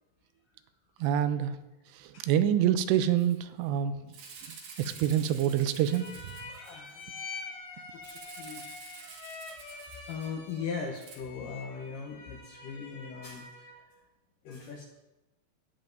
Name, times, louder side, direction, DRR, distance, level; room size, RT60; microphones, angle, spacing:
voice 1, 1.0-1.6 2.2-3.9 4.8-6.1, right 10 dB, 90° right, 11 dB, 2.8 m, -26 dB
Rattle (instrument), 3.2-3.4 3.6-3.7 4.1-7.0 8.0-10.6 10.9-11.2, right 5 dB, 75° right, 3.4 m, -49 dB
voice 2, 4.7-5.0 5.3-5.5 6.4-7.2 7.7-8.7 9.5-13.7 14.4-14.8, left 5 dB, 75° left, 1 dB, 2.0 m, -40 dB
sound 1, 5.8-13.9, left 4 dB, 30° left, 2.2 m, -46 dB
18.0 x 7.4 x 2.6 m, 1.0 s
omnidirectional pair, 4.9 m